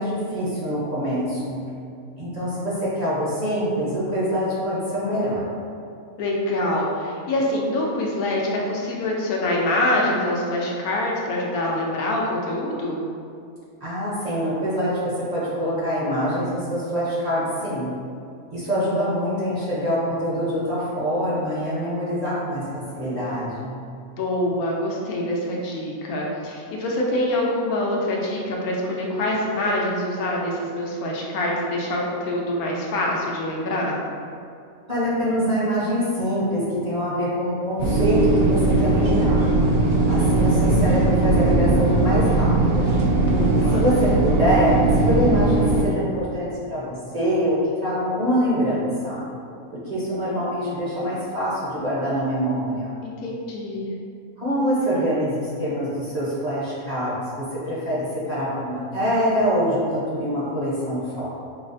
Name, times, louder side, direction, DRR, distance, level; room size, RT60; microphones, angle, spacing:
voice 1, 0.0-1.6 2.2-5.4 13.8-17.9 18.5-23.8 34.9-39.4 40.1-42.9 43.6-49.2 49.8-53.0 54.4-61.3, equal, 40° right, -9 dB, 0.6 m, -24 dB
voice 2, 6.2-13.0 24.2-34.0 43.3-43.8 49.7-50.0 53.0-53.9, left 1 dB, 85° left, -2 dB, 1.1 m, -25 dB
sound 1, 37.8-45.8, right 2 dB, 85° right, 1.1 m, -19 dB
5.2 x 2.0 x 2.6 m, 2.4 s
omnidirectional pair, 1.5 m